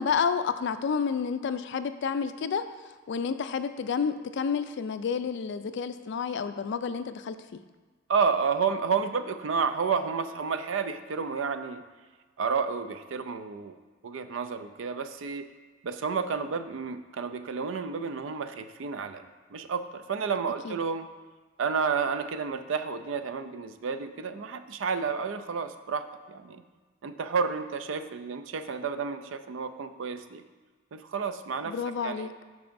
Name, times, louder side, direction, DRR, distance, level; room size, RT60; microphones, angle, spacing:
voice 1, 0.0-2.6 3.1-7.3 20.7-20.8 31.7-32.3, left 6 dB, 60° left, 11 dB, 0.3 m, -30 dB
voice 2, 8.1-11.8 12.4-13.7 14.0-15.5 15.8-19.2 19.5-21.1 21.6-26.6 27.0-30.4 30.9-31.7 32.0-32.3, right 5 dB, 70° right, 10 dB, 0.4 m, -30 dB
12.0 x 4.8 x 2.6 m, 1.4 s
head